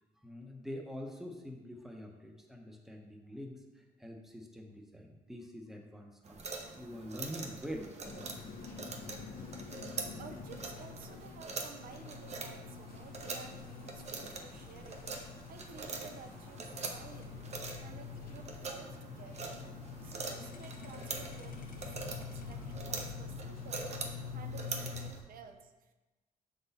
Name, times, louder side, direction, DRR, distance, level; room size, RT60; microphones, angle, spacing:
voice 1, 0.2-6.4 6.7-7.9 17.7-17.8 20.0-20.2, equal, ahead, 2 dB, 0.8 m, -45 dB
sound 1, 6.3-25.2, right 4 dB, 50° right, 0.8 m, -44 dB
sound 2, 8.0-25.1, left 5 dB, 75° left, 0.8 m, -46 dB
voice 2, 8.8-9.5 10.2-15.0 15.5-17.4 17.8-19.6 20.0-25.9, right 6 dB, 75° right, 6 dB, 0.6 m, -53 dB
6.5 x 4.0 x 4.1 m, 1.1 s
cardioid pair, 115°, 15 cm